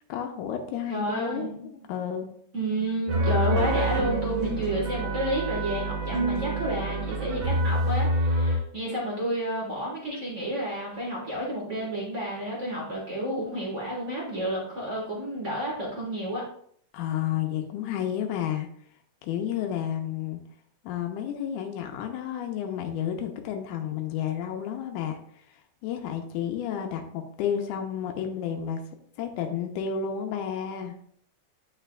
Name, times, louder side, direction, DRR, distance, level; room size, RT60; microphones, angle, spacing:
voice 1, 0.1-2.3 16.9-18.7 19.2-20.4 20.8-25.2 25.8-28.8 29.2-31.0, left 9 dB, 90° left, 3 dB, 2.2 m, -31 dB
voice 2, 0.9-1.7 2.5-16.4, right 1 dB, 45° right, -4 dB, 0.9 m, -30 dB
sound 1, 3.1-8.6, right 1 dB, 70° right, 2.3 m, -27 dB
9.0 x 5.5 x 2.2 m, 0.64 s
omnidirectional pair, 3.5 m